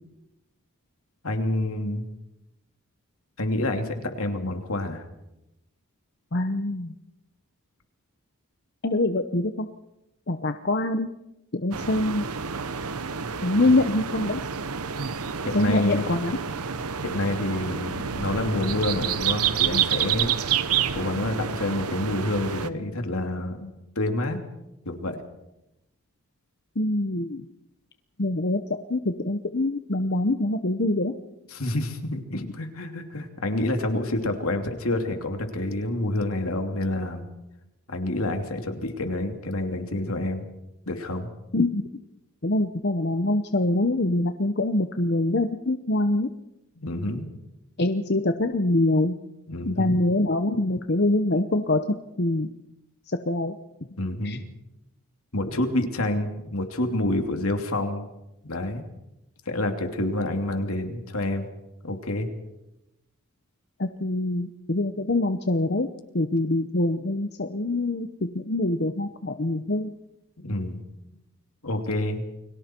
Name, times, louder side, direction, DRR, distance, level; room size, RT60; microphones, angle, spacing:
voice 1, 1.2-2.1 3.4-5.0 15.4-16.1 17.0-20.3 20.9-24.4 24.8-25.2 31.5-37.2 37.9-40.4 40.9-41.3 46.8-47.3 49.5-50.0 54.0-54.4 55.3-58.0 58.4-58.8 59.5-61.5 61.8-62.3 70.4-70.8 71.6-72.2, left 1 dB, 75° left, 5 dB, 2.8 m, -28 dB
voice 2, 6.3-6.9 8.8-9.7 10.3-11.1 11.5-12.2 13.4-14.4 15.5-16.4 26.8-27.4 28.2-28.6 28.9-31.1 41.5-41.8 42.4-46.3 47.8-49.1 49.7-51.8 52.2-52.5 53.1-53.5 54.2-54.4 63.8-65.9 66.1-69.9, left 2 dB, 50° left, 7 dB, 0.9 m, -24 dB
sound 1, 11.7-22.7, right 7 dB, 85° right, 1.0 m, -28 dB
30.0 x 23.0 x 4.5 m, 0.93 s
head